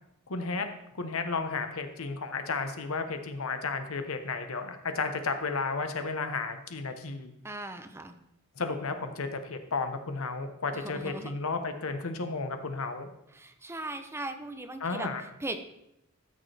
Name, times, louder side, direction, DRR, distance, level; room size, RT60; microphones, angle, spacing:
voice 1, 0.3-0.7 0.9-7.3 8.6-13.1 14.8-15.2, left 4 dB, 75° left, 7 dB, 1.0 m, -33 dB
voice 2, 7.4-8.2 10.7-11.3 13.3-15.1 15.4-15.7, right 2 dB, 10° right, 8 dB, 0.6 m, -38 dB
13.0 x 6.5 x 3.3 m, 0.81 s
head